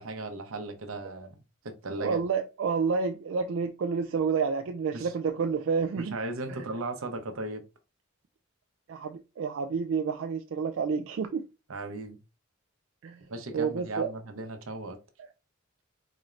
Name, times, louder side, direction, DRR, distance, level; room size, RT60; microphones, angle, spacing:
voice 1, 0.0-1.3 1.6-2.2 4.9-5.1 6.0-7.6 11.7-12.2 13.3-15.0, right 2 dB, 90° right, 0.8 m, -36 dB
voice 2, 2.0-6.2 6.5-6.7 8.9-11.5 13.0-14.1 15.2-15.3, right 5 dB, 65° right, 0.3 m, -29 dB
4.2 x 3.1 x 2.5 m
head